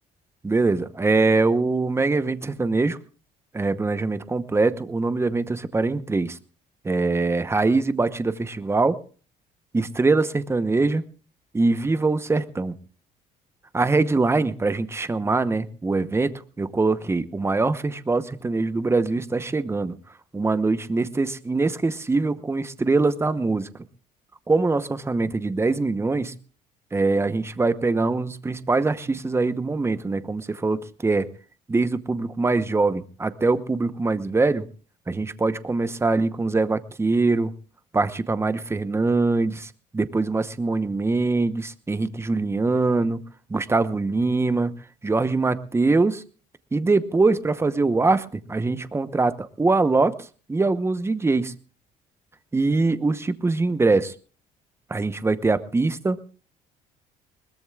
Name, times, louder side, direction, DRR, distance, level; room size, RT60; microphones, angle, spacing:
voice 1, 0.4-3.0 3.5-6.4 6.8-9.0 9.7-11.0 11.5-12.8 13.7-20.0 20.3-23.7 24.5-26.3 26.9-31.3 31.7-34.7 35.1-37.5 37.9-43.2 43.5-44.7 45.0-46.2 46.7-51.5 52.5-54.1 54.9-56.2, right 3 dB, 15° right, 12 dB, 0.9 m, -23 dB
21.5 x 20.0 x 2.4 m, 0.38 s
cardioid pair, 110°, 17 cm